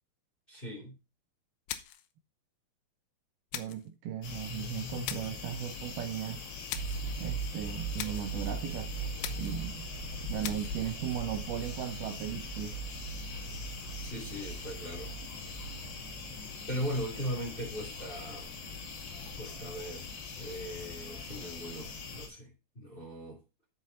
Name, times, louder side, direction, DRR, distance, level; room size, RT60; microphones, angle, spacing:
voice 1, 0.5-1.0 14.0-15.1 16.7-18.6 19.4-23.4, equal, 15° left, 2.4 m, -39 dB
sound 1, 1.7-2.1 3.5-3.9 5.1-5.4 6.7-7.1 8.0-8.4 9.2-9.7 10.4-10.8, left 12 dB, 75° left, 2.7 m, -40 dB
voice 2, 3.5-6.4 7.2-8.9 9.4-9.9 10.2-12.8, right 10 dB, 75° right, 2.6 m, -37 dB
sound 2, 4.2-22.3, left 5 dB, 60° left, 4.1 m, -42 dB
sound 3, 6.7-16.6, right 6 dB, 45° right, 3.0 m, -41 dB
10.5 x 6.7 x 4.0 m
omnidirectional pair, 4.8 m